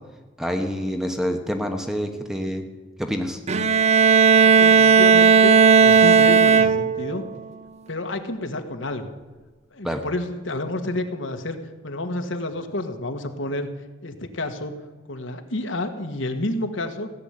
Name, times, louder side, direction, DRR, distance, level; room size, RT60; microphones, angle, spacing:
voice 1, 0.4-2.6 3.0-3.4 9.8-10.0, equal, ahead, 5 dB, 1.2 m, -27 dB
Bowed string instrument, 3.5-7.1, right 6 dB, 35° right, 0.6 m, -15 dB
voice 2, 4.4-7.2 7.9-9.1 9.7-11.6 11.8-13.7 14.0-14.7 15.1-17.1, left 1 dB, 75° left, 6 dB, 1.6 m, -29 dB
16.5 x 8.2 x 10.0 m, 1.3 s
head